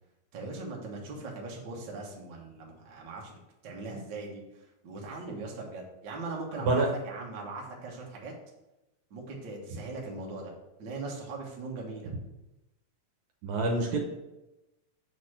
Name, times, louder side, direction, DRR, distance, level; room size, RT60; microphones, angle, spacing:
voice 1, 0.3-8.3 9.1-10.5 10.8-12.1, right 3 dB, 50° right, -2 dB, 1.7 m, -40 dB
voice 2, 13.4-14.0, right 3 dB, 70° right, 1 dB, 2.2 m, -26 dB
6.4 x 4.1 x 6.4 m, 0.98 s
omnidirectional pair, 3.4 m